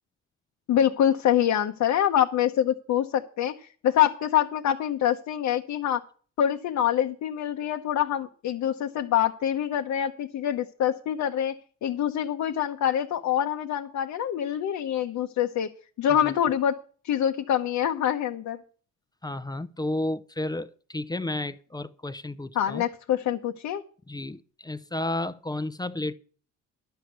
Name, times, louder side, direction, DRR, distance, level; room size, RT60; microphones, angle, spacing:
voice 1, 0.7-6.0 6.4-11.5 11.8-15.7 16.0-16.8 17.0-18.6 22.5-23.8, left 10 dB, 70° left, 0.8 m, -25 dB
voice 2, 19.2-22.8 24.1-26.1, left 1 dB, 15° left, 0.6 m, -32 dB
11.5 x 6.2 x 8.1 m
cardioid pair, 90°, 30 cm